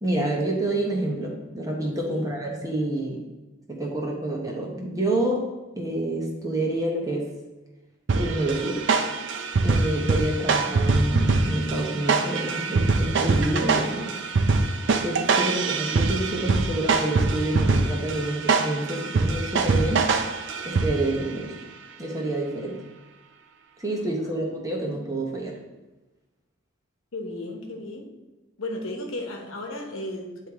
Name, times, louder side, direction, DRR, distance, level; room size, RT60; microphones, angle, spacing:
voice 1, 0.0-3.2 3.7-5.4 5.8-7.3 8.2-8.8 9.6-14.1 15.0-20.1 20.6-21.7 22.0-22.8 23.8-25.6, right 1 dB, 15° right, -1 dB, 0.9 m, -28 dB
voice 2, 2.1-2.6 23.9-24.4 27.1-28.1 28.6-30.5, left 1 dB, 75° left, 2 dB, 1.0 m, -35 dB
sound 1, 8.1-21.2, right 3 dB, 55° right, 0.4 m, -24 dB
9.6 x 3.2 x 3.5 m, 1.1 s
head